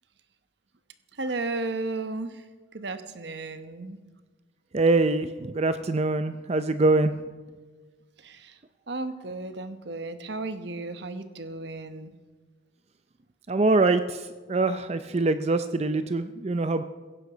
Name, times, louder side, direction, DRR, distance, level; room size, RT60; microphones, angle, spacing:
voice 1, 1.1-2.5 2.7-4.0 8.2-8.6 8.9-12.1, right 2 dB, 60° right, 10 dB, 1.1 m, -34 dB
voice 2, 4.7-7.1 13.5-14.2 14.5-16.8, right 2 dB, 35° right, 11 dB, 0.5 m, -24 dB
16.5 x 14.0 x 5.0 m, 1.3 s
head